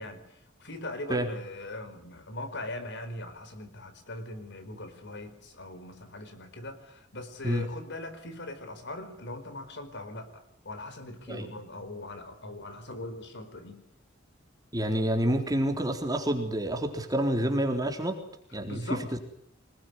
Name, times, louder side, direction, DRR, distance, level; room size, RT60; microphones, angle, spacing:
voice 1, 0.0-13.8 18.6-19.2, left 1 dB, 60° left, 10 dB, 4.5 m, -40 dB
voice 2, 14.7-18.2 18.5-19.0, right 1 dB, 20° right, 4 dB, 3.8 m, -28 dB
25.5 x 21.0 x 9.5 m, 0.68 s
head